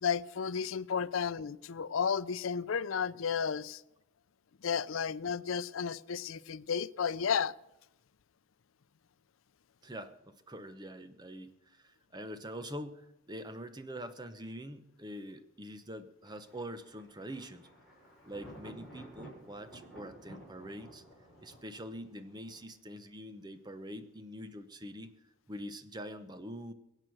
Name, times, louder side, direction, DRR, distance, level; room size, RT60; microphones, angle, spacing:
voice 1, 0.0-3.8 4.6-7.5, left 6 dB, 75° left, 0.5 m, -33 dB
voice 2, 9.8-17.7 18.2-21.0 21.4-25.2 25.5-26.7, equal, 20° right, 0.9 m, -45 dB
Thunder, 16.2-22.6, right 1 dB, ahead, 5.5 m, -53 dB
23.0 x 8.8 x 6.2 m
head